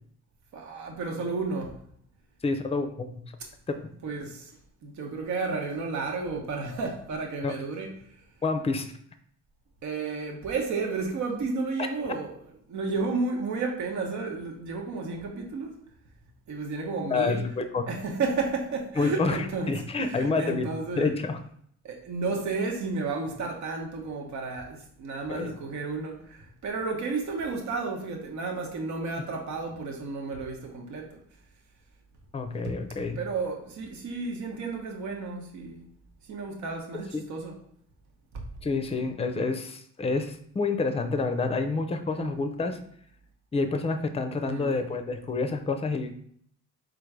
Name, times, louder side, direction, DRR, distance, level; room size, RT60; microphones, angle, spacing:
voice 1, 0.5-1.8 4.0-4.6 4.8-8.2 9.8-12.4 12.7-15.8 16.5-17.4 17.9-21.1 21.8-31.2 32.6-35.9 36.2-37.6 38.3-38.4 42.0-42.4 44.4-44.8, right 4 dB, 70° right, 1.1 m, -32 dB
voice 2, 2.4-3.2 3.7-3.9 7.4-7.5 8.4-8.9 17.1-17.8 19.0-19.4 19.7-20.7 21.0-21.4 25.3-25.6 32.3-33.2 37.1-37.2 38.6-42.8 43.5-46.2, left 3 dB, 20° left, 0.5 m, -28 dB
3.8 x 2.6 x 4.7 m
cardioid pair, 90°, 30 cm